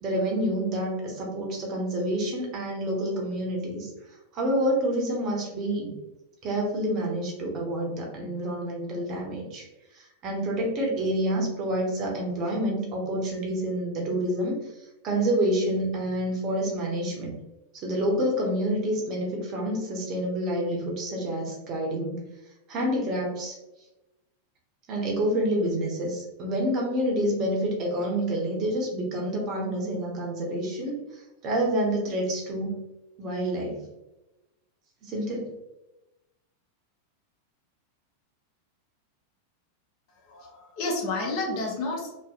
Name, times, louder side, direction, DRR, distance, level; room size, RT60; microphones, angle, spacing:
voice 1, 0.0-3.9 4.3-6.0 6.4-9.7 9.9-17.4 17.7-22.2 22.7-23.6 24.9-32.8 33.2-33.8 35.0-35.5, right 1 dB, 35° right, -1 dB, 0.7 m, -28 dB
voice 2, 40.2-42.1, left 2 dB, 45° left, -2 dB, 0.7 m, -30 dB
2.6 x 2.0 x 2.3 m, 0.98 s
figure-of-eight pair, 90°, 0 cm